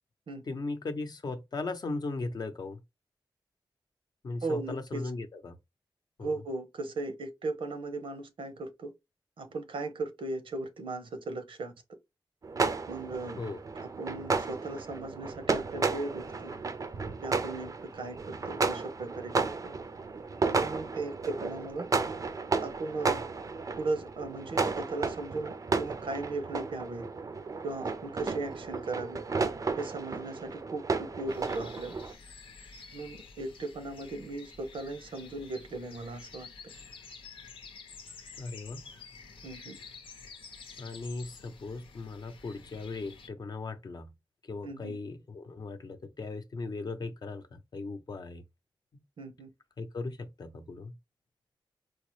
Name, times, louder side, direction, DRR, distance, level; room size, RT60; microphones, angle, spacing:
voice 1, 0.5-2.8 4.2-5.6 6.2-6.4 13.4-13.6 38.4-38.8 40.8-44.1 44.4-48.4 48.9-49.0 49.8-50.9, left 3 dB, 50° left, 0.6 m, -38 dB
voice 2, 4.4-5.0 6.2-8.9 9.4-11.7 12.9-13.4 13.8-16.5 17.2-19.3 19.6-19.7 20.4-21.9 22.6-23.2 23.8-27.1 27.6-29.2 29.8-32.0 32.9-36.5 39.4-39.8 44.6-45.0 49.2-49.5, right 2 dB, 85° right, 0.8 m, -37 dB
sound 1, 12.4-32.1, right 4 dB, 40° right, 0.5 m, -33 dB
sound 2, 31.3-43.3, left 5 dB, 90° left, 0.7 m, -50 dB
4.6 x 2.0 x 3.1 m
wide cardioid pair, 115°, 9 cm